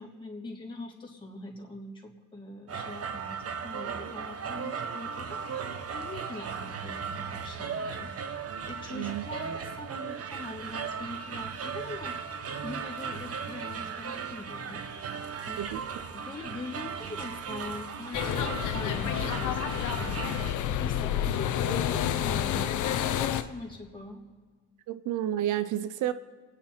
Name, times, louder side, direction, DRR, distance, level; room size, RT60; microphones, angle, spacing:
voice 1, 0.0-8.1 8.6-14.8 15.4-15.8 16.1-24.2, left 2 dB, 15° left, -2 dB, 3.4 m, -43 dB
sound 1, 2.7-20.5, right 6 dB, 50° right, 1.1 m, -37 dB
voice 2, 8.9-9.2 15.6-15.8 24.9-26.1, right 12 dB, 85° right, 13 dB, 0.7 m, -30 dB
sound 2, 18.1-23.4, left 10 dB, 80° left, 0.9 m, -29 dB
29.0 x 10.0 x 4.4 m, 1.5 s
cardioid pair, 90°, 30 cm